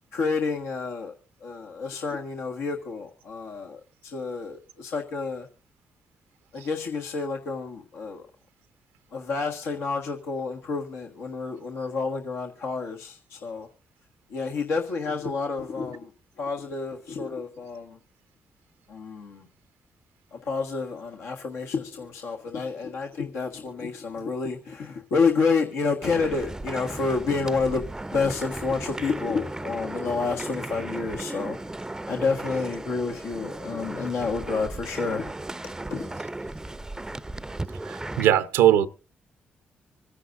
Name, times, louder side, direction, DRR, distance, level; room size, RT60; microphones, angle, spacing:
voice 1, 0.1-1.1 1.4-5.5 6.5-8.2 9.1-13.7 14.3-16.1 16.4-18.0 18.9-19.4 20.3-27.8 28.1-31.6 32.1-35.3 35.9-36.1, left 4 dB, 80° left, 1.5 m, -29 dB
sound 1, 26.0-38.3, right 2 dB, 15° right, 0.5 m, -36 dB
voice 2, 37.8-38.9, right 11 dB, 90° right, 0.7 m, -20 dB
26.0 x 9.9 x 2.6 m
supercardioid pair, 50°, 4 cm